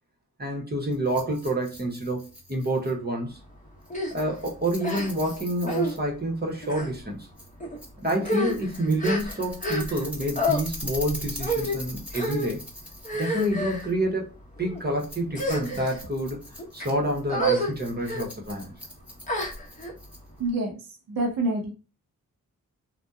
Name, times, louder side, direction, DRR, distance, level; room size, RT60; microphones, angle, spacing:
voice 1, 0.4-3.4 4.1-7.3 8.0-12.7 13.1-16.4 16.7-18.7, right 1 dB, 30° right, 0 dB, 0.9 m, -28 dB
Rattle, 0.9-20.5, equal, 5° right, 1.2 m, -42 dB
sound 1, 3.9-4.1 4.8-5.3 5.7-5.9 6.6-6.9 7.6-7.8 8.2-10.1 10.4-10.6 11.4-11.8 12.1-12.5 13.0-13.9 14.6-14.8 15.3-16.0 16.6-16.9 17.3-17.7 18.0-18.3 19.3-19.9, equal, 20° left, 1.0 m, -29 dB
voice 2, 20.4-20.8 21.1-21.7, right 2 dB, 75° right, 2 dB, 0.7 m, -26 dB
2.7 x 2.2 x 2.3 m, 0.32 s
cardioid pair, 40°, 35 cm